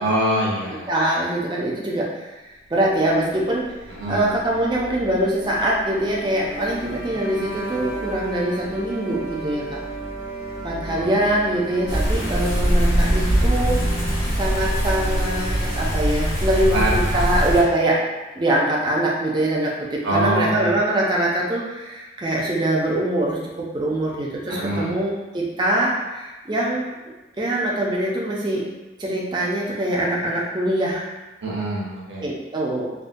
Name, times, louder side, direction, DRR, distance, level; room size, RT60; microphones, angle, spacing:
voice 1, 0.0-0.9 4.0-4.3 10.9-11.1 16.7-17.2 20.0-20.7 24.5-25.0 31.4-32.3, right 1 dB, 65° right, -4 dB, 0.8 m, -24 dB
voice 2, 0.9-3.7 4.1-9.8 10.6-13.8 14.4-18.0 18.3-26.8 27.4-28.7 29.0-31.1 32.2-32.9, right 1 dB, 25° right, -4 dB, 0.4 m, -23 dB
sound 1, 3.1-16.1, right 1 dB, 35° left, 0.6 m, -34 dB
sound 2, 11.9-17.6, equal, 65° left, 1.5 m, -22 dB
3.5 x 2.1 x 2.5 m, 1.1 s
head